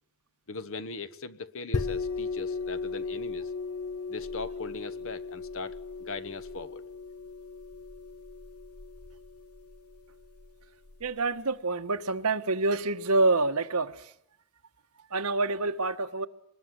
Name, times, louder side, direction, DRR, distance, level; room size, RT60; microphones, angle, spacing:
voice 1, 0.5-3.5 4.1-6.8, left 3 dB, 60° left, 1.2 m, -40 dB
sound 1, 1.7-11.1, left 4 dB, 80° left, 1.0 m, -37 dB
voice 2, 11.0-13.9 15.1-16.3, right 3 dB, 90° right, 1.5 m, -27 dB
25.0 x 21.0 x 9.7 m
head